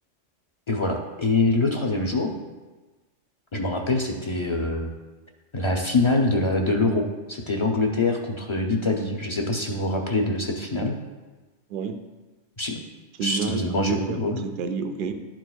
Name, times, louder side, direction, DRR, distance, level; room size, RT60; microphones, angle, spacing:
voice 1, 0.7-2.3 3.5-4.9 5.5-11.0 12.6-12.7 13.2-14.4, left 2 dB, 35° left, 1 dB, 0.5 m, -24 dB
voice 2, 11.7-12.0 13.2-15.1, right 5 dB, 55° right, 7 dB, 0.6 m, -29 dB
11.5 x 4.5 x 2.3 m, 1.2 s
omnidirectional pair, 1.3 m